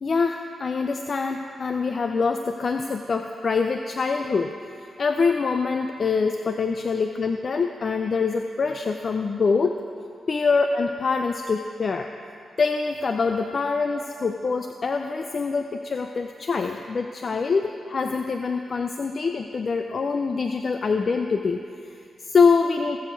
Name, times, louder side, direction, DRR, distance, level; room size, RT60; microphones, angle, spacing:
voice 1, 0.0-9.8 10.3-12.1 12.6-23.0, left 4 dB, 55° left, 5 dB, 0.5 m, -25 dB
19.0 x 7.1 x 4.7 m, 2.4 s
cardioid pair, 55°, 0 cm